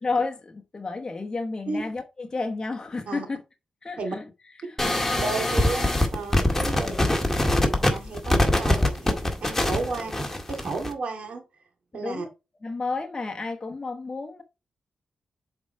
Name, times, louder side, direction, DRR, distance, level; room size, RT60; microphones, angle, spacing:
voice 1, 0.0-3.4 3.8-4.2 4.6-4.8 6.7-7.1 9.9-10.1 11.9-12.3 12.6-14.4, left 3 dB, 35° left, 1.0 m, -31 dB
sound 1, 4.8-10.9, left 1 dB, 15° left, 1.9 m, -23 dB
voice 2, 5.1-7.0 7.6-9.1 9.4-10.1 10.5-11.4 11.9-12.3, right 3 dB, 70° right, 2.3 m, -32 dB
7.2 x 4.6 x 4.5 m
cardioid pair, 75°, 2 cm